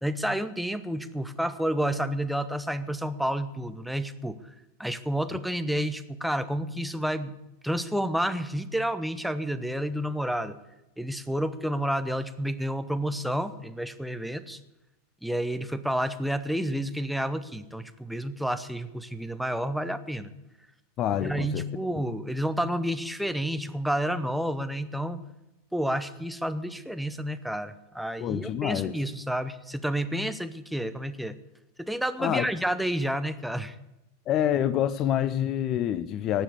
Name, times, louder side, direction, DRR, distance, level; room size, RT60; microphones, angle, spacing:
voice 1, 0.0-4.4 4.8-7.3 7.6-10.6 11.0-14.6 15.2-20.3 21.2-25.2 25.7-31.4 31.8-33.7, equal, ahead, 10 dB, 0.9 m, -30 dB
voice 2, 21.0-21.7 21.9-22.0 28.2-29.0 32.2-32.5 34.3-36.4, left 10 dB, 35° left, 16 dB, 0.5 m, -27 dB
18.5 x 7.4 x 8.4 m, 0.96 s
figure-of-eight pair, 90°, 0 cm